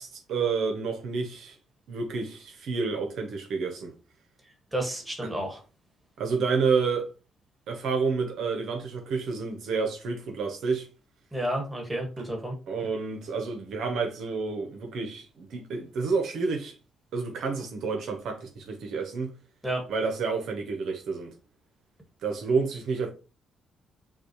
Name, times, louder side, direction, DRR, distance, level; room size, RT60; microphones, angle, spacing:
voice 1, 0.0-1.6 1.9-3.9 6.2-7.1 7.7-10.9 12.7-16.7 17.1-19.3 19.9-21.3 22.2-23.1, right 4 dB, 75° right, 1.0 m, -29 dB
voice 2, 4.7-5.6 11.3-12.6 19.6-19.8, right 1 dB, 10° right, 1.6 m, -31 dB
5.9 x 2.4 x 3.1 m
cardioid pair, 90°, 0 cm